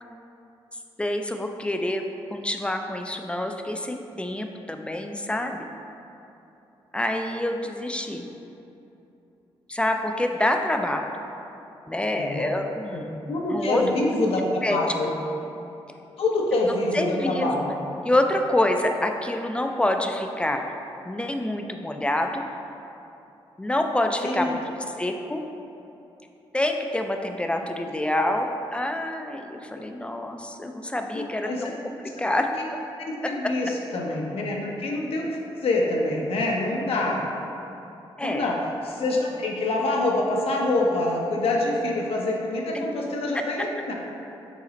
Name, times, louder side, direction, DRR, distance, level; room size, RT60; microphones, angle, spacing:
voice 1, 1.0-2.0 2.3-5.7 6.9-8.3 9.7-11.1 11.9-13.1 13.5-13.8 14.6-14.8 16.9-17.6 18.0-20.8 21.0-22.4 23.6-24.6 25.0-25.4 26.5-32.5 33.2-33.5 38.2-38.5 42.7-42.8 43.3-43.4, left 1 dB, 10° left, 4 dB, 0.3 m, -27 dB
voice 2, 12.2-12.5 12.9-15.1 16.2-17.7 24.2-24.6 31.1-31.6 32.6-32.7 33.0-37.2 38.2-38.6 38.8-43.9, left 2 dB, 70° left, -1 dB, 0.6 m, -26 dB
5.0 x 2.1 x 3.9 m, 2.9 s
cardioid pair, 65°, 10 cm